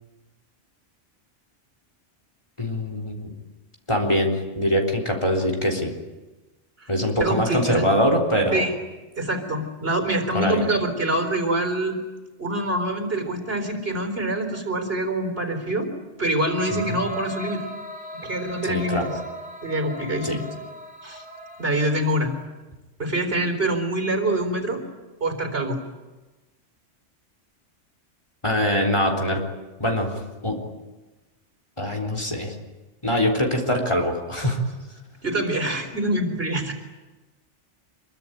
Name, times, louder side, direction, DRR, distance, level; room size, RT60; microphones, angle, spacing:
voice 1, 2.6-3.3 3.9-5.9 6.9-8.7 10.3-10.6 16.7-17.0 18.7-19.1 20.2-20.4 28.4-29.4 29.8-30.1 30.4-30.6 31.8-32.5 33.0-34.6, equal, 25° left, 2 dB, 3.7 m, -23 dB
voice 2, 7.2-7.8 8.5-8.7 9.2-12.0 12.4-15.9 16.2-17.6 18.2-19.1 19.6-20.4 21.0-21.2 21.6-22.3 23.0-24.8 25.2-25.8 35.2-36.7, right 1 dB, 55° right, 6 dB, 4.4 m, -25 dB
sound 1, 16.6-22.2, equal, 5° right, 4.1 m, -37 dB
26.0 x 23.0 x 9.2 m, 1.2 s
omnidirectional pair, 1.2 m